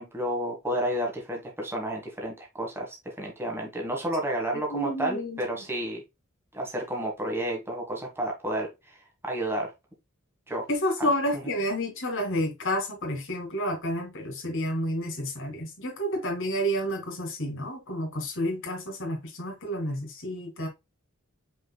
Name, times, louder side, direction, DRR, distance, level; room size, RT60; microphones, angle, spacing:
voice 1, 0.0-6.0 6.5-9.0 9.2-9.7 10.5-10.7 11.0-11.1 11.3-11.4, right 1 dB, 10° right, 1.4 m, -31 dB
voice 2, 4.5-5.6 10.7-20.7, equal, 60° left, 2.1 m, -30 dB
5.2 x 4.2 x 2.2 m
head